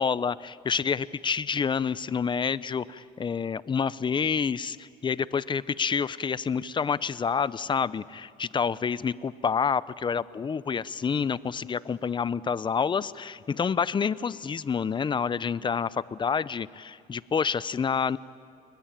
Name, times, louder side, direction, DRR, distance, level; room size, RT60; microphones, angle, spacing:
voice 1, 0.0-18.2, left 6 dB, 30° left, 18 dB, 0.7 m, -28 dB
29.5 x 22.0 x 8.9 m, 2.3 s
cardioid pair, 110°, 17 cm